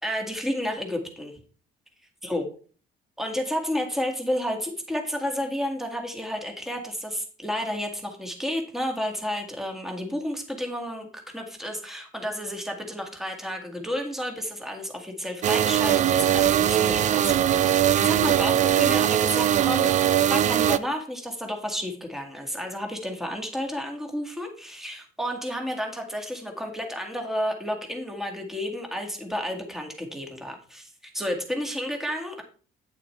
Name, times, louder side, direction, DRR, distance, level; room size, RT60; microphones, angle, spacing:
voice 1, 0.0-1.3 2.2-2.4 3.2-19.9 20.2-32.4, equal, ahead, 2 dB, 2.0 m, -31 dB
sound 1, 15.4-20.8, right 11 dB, 45° right, 0.4 m, -21 dB
9.0 x 8.4 x 3.2 m, 0.40 s
cardioid pair, 110°, 17 cm